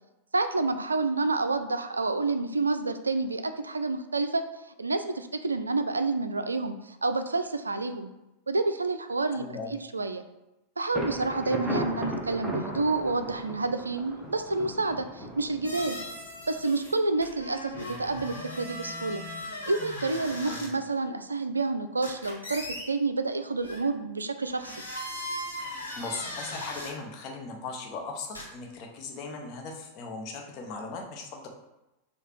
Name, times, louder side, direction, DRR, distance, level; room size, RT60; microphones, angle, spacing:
voice 1, 0.3-4.4 4.8-8.1 8.5-10.2 10.8-16.0 16.5-19.2 19.7-24.7, right 3 dB, 80° right, 8 dB, 0.3 m, -29 dB
voice 2, 9.3-9.7 20.5-20.6 26.0-31.5, left 4 dB, 40° left, 1 dB, 0.8 m, -38 dB
Thunder, 10.9-16.6, right 1 dB, 5° right, 0.8 m, -36 dB
sound 1, 15.6-16.9 17.2-20.7 22.0-22.8 23.6-23.8 24.5-26.9 28.3-28.4, left 1 dB, 85° left, 1.2 m, -38 dB
6.5 x 2.3 x 3.1 m, 0.95 s
figure-of-eight pair, 90°, 0 cm